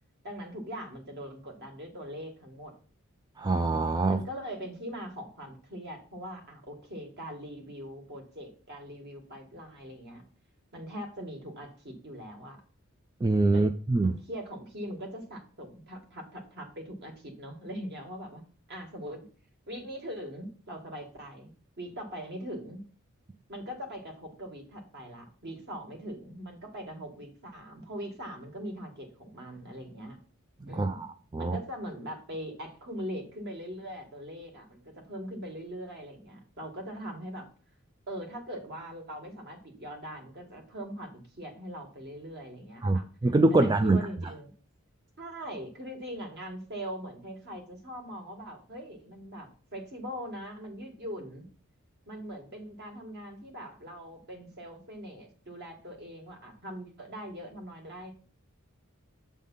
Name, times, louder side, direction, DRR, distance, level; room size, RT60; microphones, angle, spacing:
voice 1, 0.2-2.7 4.0-10.2 10.7-12.6 13.5-13.7 14.0-18.4 18.7-19.2 19.7-22.8 23.5-30.2 30.7-31.0 31.4-37.5 38.1-41.1 41.4-43.1 43.5-44.5 45.2-51.4 52.1-58.1, equal, 55° right, 1.9 m, -41 dB
voice 2, 3.4-4.2 13.2-14.2 30.6-31.6 42.8-44.0, right 2 dB, 20° right, 0.3 m, -25 dB
7.4 x 3.7 x 5.5 m
head